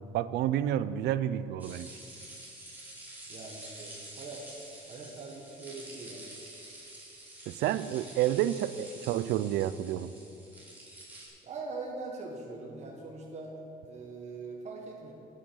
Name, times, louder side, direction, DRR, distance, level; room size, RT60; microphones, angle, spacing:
voice 1, 0.1-1.9 7.5-10.1, right 12 dB, 80° right, 15 dB, 0.5 m, -29 dB
sound 1, 1.6-11.3, right 1 dB, 10° right, 3.0 m, -48 dB
voice 2, 3.3-4.4 4.9-6.3 11.4-13.5 13.8-15.1, right 3 dB, 40° right, -1 dB, 1.6 m, -42 dB
9.3 x 8.8 x 6.4 m, 2.7 s
cardioid pair, 110°, 17 cm